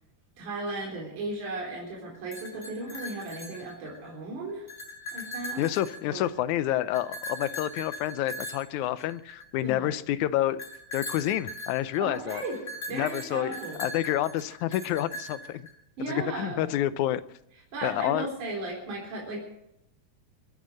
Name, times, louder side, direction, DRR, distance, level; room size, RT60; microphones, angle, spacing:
voice 1, 0.4-4.7 5.1-5.7 6.1-6.3 9.6-9.9 12.0-12.6 12.9-13.9 16.0-16.7 17.7-19.4, right 2 dB, 65° right, -1 dB, 5.2 m, -35 dB
sound 1, 2.1-4.1 4.5-6.4 6.9-9.7 10.6-15.7, left 1 dB, 15° left, 3.9 m, -40 dB
voice 2, 5.6-10.6 10.9-12.4 12.9-15.7 16.1-17.2 17.8-18.3, left 13 dB, 75° left, 15 dB, 1.9 m, -28 dB
24.0 x 9.3 x 6.4 m, 0.81 s
omnidirectional pair, 3.8 m